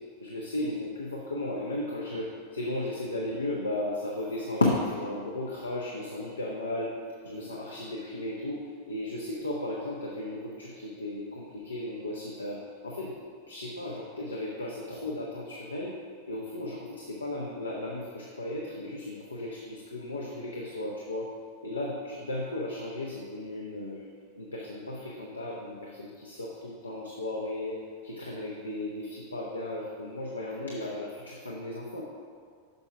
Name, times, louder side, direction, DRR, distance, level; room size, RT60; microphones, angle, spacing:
voice 1, 0.2-6.9 7.2-16.0 16.3-21.3 21.6-24.1 24.4-32.0, left 1 dB, 75° left, -3 dB, 0.9 m, -35 dB
6.7 x 5.8 x 5.7 m, 2.1 s
figure-of-eight pair, 90°, 0 cm